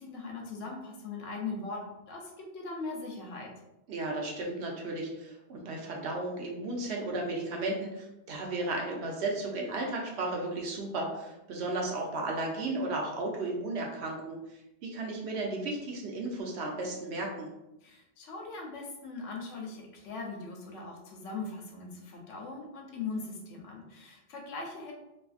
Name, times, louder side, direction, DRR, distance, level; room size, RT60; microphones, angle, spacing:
voice 1, 0.0-1.8 2.1-3.5 17.8-24.9, left 3 dB, 85° left, 0 dB, 1.0 m, -40 dB
voice 2, 3.9-14.4 14.8-17.5, right 2 dB, 70° right, 0 dB, 0.9 m, -34 dB
2.6 x 2.5 x 2.4 m, 0.92 s
omnidirectional pair, 1.2 m